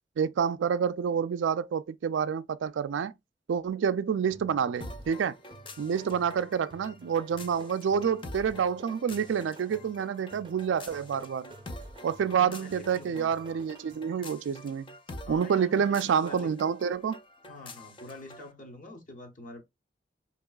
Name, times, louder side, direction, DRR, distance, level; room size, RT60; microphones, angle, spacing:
voice 1, 0.2-3.1 3.5-5.3 5.8-11.5 12.0-14.9 15.3-17.2, right 7 dB, 75° right, 0.3 m, -28 dB
sound 1, 4.3-14.2, right 3 dB, 25° right, 0.6 m, -53 dB
sound 2, 4.8-18.5, left 1 dB, 25° left, 0.4 m, -47 dB
voice 2, 12.3-13.3 15.2-16.5 17.4-19.6, left 2 dB, 45° left, 0.9 m, -46 dB
4.7 x 2.9 x 2.2 m
head